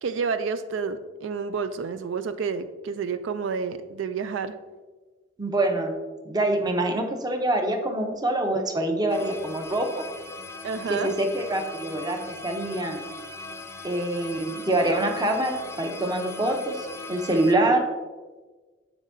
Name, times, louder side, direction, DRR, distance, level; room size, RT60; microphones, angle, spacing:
voice 1, 0.0-4.5 10.6-11.1, right 5 dB, 85° right, 11 dB, 0.4 m, -29 dB
voice 2, 5.4-5.9 6.2-9.9 10.9-13.0 13.8-17.8, right 1 dB, 20° right, 5 dB, 0.7 m, -25 dB
sound 1, 9.1-17.5, left 2 dB, 15° left, 0.5 m, -40 dB
7.8 x 6.3 x 2.6 m, 1.3 s
head